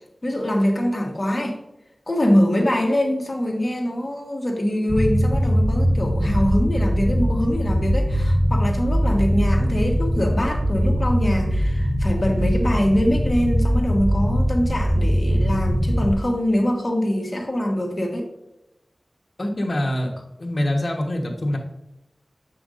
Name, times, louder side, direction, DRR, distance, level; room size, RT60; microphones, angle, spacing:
voice 1, 0.2-1.6 2.1-18.3, equal, 40° left, 1 dB, 1.5 m, -23 dB
sound 1, 4.9-16.1, equal, 5° right, 0.9 m, -21 dB
voice 2, 19.4-20.1 20.4-21.6, left 1 dB, 55° left, 1 dB, 1.3 m, -24 dB
7.5 x 5.7 x 2.6 m, 0.90 s
wide cardioid pair, 65°, 0 cm